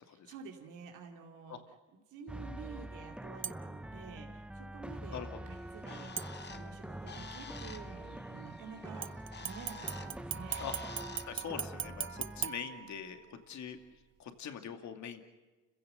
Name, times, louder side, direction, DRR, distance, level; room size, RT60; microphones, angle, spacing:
voice 1, 0.1-1.6 1.9-6.1 6.4-9.1 9.4-10.7, right 6 dB, 85° right, 1 dB, 2.8 m, -50 dB
sound 1, 2.3-12.5, right 1 dB, 5° right, 0.8 m, -45 dB
sound 2, 3.4-3.9 6.2-6.9 9.0-13.4 13.8-13.9, right 9 dB, 40° right, 0.7 m, -41 dB
Bird, 5.5-11.4, left 6 dB, 35° left, 1.1 m, -51 dB
voice 2, 11.2-13.8 14.2-15.3, left 8 dB, 65° left, 6 dB, 2.5 m, -43 dB
30.0 x 16.0 x 7.9 m, 1.2 s
cardioid pair, 90°, 30 cm